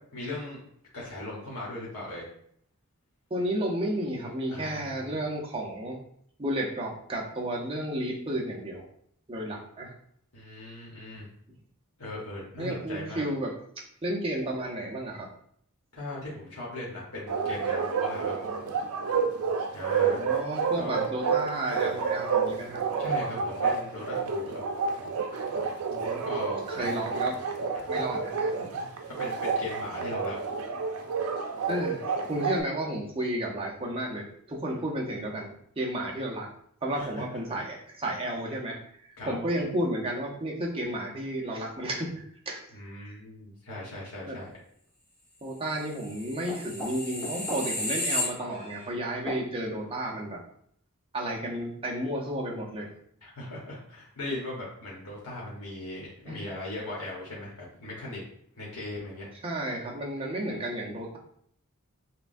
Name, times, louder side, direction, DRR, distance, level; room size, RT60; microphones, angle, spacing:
voice 1, 0.1-0.6 0.9-2.3 4.5-5.1 10.3-11.3 12.0-13.2 15.9-18.5 19.7-20.3 20.7-21.1 23.0-24.6 26.2-27.1 27.7-28.0 28.6-30.4 36.9-37.6 39.2-39.5 42.7-44.5 53.2-58.2 58.6-59.3, left 1 dB, 75° left, -6 dB, 1.1 m, -39 dB
voice 2, 3.3-6.0 6.4-8.9 9.3-9.9 12.6-15.3 20.0-22.9 25.8-26.3 26.7-27.4 27.9-28.5 31.7-32.0 32.3-36.5 36.8-42.6 43.0-43.1 44.3-44.4 45.4-50.4 51.1-52.9 56.3-56.4 59.4-61.2, right 1 dB, 25° right, -1 dB, 0.7 m, -32 dB
Bark, 17.3-32.6, right 5 dB, 75° right, 0.5 m, -29 dB
sound 1, 46.0-48.9 49.3-49.4, left 1 dB, 10° left, 1.2 m, -33 dB
5.8 x 2.2 x 2.6 m, 0.65 s
head